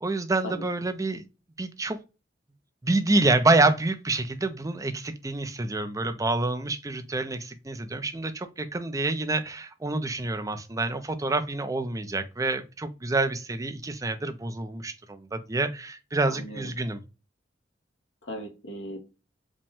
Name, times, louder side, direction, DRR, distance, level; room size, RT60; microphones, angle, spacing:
voice 1, 0.0-1.2 1.6-2.0 2.8-17.0, right 2 dB, 20° right, 0.5 m, -27 dB
voice 2, 16.3-16.7 18.2-19.0, equal, 80° left, 1.2 m, -37 dB
5.1 x 2.2 x 3.4 m
head